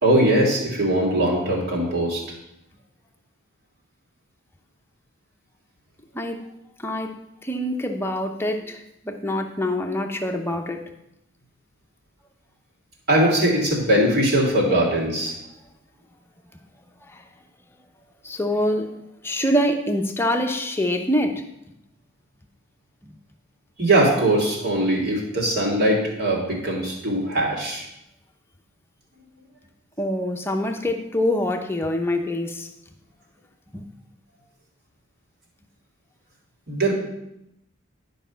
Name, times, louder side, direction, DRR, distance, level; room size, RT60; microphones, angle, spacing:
voice 1, 0.0-2.2 13.1-15.4 23.8-27.8 36.7-36.9, right 1 dB, 50° right, -2 dB, 3.0 m, -21 dB
voice 2, 6.8-7.1 7.4-10.8 17.1-17.2 18.2-18.9 19.2-21.4 23.0-23.1 30.0-32.7 33.7-33.8, left 1 dB, 10° left, 4 dB, 0.8 m, -25 dB
11.5 x 5.5 x 5.7 m, 0.83 s
head